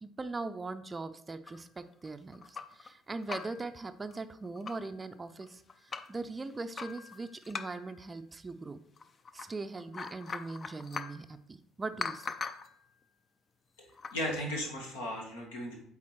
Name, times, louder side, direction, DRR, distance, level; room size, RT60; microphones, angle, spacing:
voice 1, 0.0-8.8 9.3-12.3, right 3 dB, 25° right, 11 dB, 0.4 m, -40 dB
sound 1, 1.5-2.9 3.2-3.7 4.1-4.2 4.4-4.9 5.4-6.2 6.7-8.0 9.0-9.5 9.8-11.2 12.0-12.8 13.9-14.2, left 5 dB, 35° left, 0.5 m, -41 dB
voice 2, 13.8-15.8, equal, 75° left, 1 dB, 1.3 m, -36 dB
8.4 x 3.6 x 3.1 m, 0.74 s
figure-of-eight pair, 55°, 0 cm